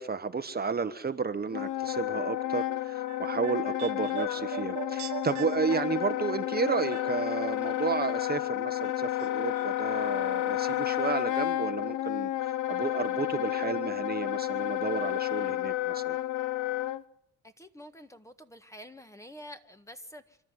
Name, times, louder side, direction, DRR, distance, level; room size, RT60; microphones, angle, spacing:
voice 1, 0.0-16.2, right 5 dB, 30° right, 9 dB, 1.2 m, -32 dB
Wind instrument woodwind instrument, 1.5-17.0, left 14 dB, 85° left, 0.9 m, -31 dB
sound 1, 2.8-8.1 8.3-9.3 9.5-9.6, right 12 dB, 65° right, 1.7 m, -42 dB
voice 2, 17.4-20.4, equal, 10° left, 8 dB, 1.6 m, -48 dB
28.0 x 12.5 x 9.7 m, 0.73 s
cardioid pair, 90°, 30 cm